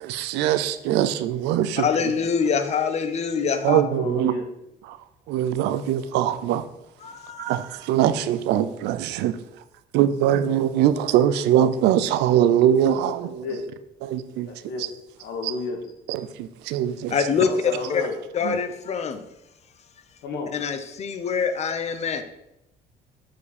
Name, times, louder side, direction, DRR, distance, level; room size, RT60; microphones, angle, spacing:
voice 1, 0.0-1.9 3.6-4.4 4.9-5.0 5.3-6.6 7.4-9.4 9.9-13.5 14.0-14.5 15.4-15.5 16.1-17.1 18.4-18.6, right 10 dB, 90° right, 12 dB, 0.5 m, -22 dB
voice 2, 1.8-3.8 7.0-7.5 17.1-18.0 18.3-19.2 20.5-22.2, left 6 dB, 40° left, 8 dB, 0.8 m, -25 dB
voice 3, 3.9-4.5 13.4-13.6 14.5-14.9 15.2-15.8 17.4-18.1 20.2-20.5, left 3 dB, 80° left, 3 dB, 1.5 m, -31 dB
7.1 x 4.7 x 4.2 m, 0.86 s
cardioid pair, 110°, 17 cm